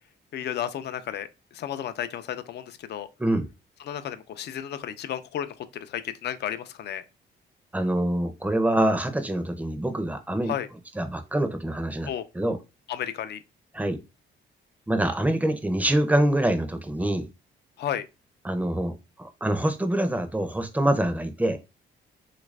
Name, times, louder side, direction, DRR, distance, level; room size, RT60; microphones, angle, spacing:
voice 1, 0.3-3.1 3.8-7.0 10.4-10.7 12.1-12.2 12.9-13.4 17.8-18.1, left 10 dB, 60° left, 0.4 m, -33 dB
voice 2, 7.7-10.5 11.0-12.1 12.4-12.6 13.7-14.0 14.9-17.3 18.4-21.6, right 1 dB, 10° right, 0.6 m, -25 dB
3.2 x 2.5 x 3.1 m
cardioid pair, 90°, 20 cm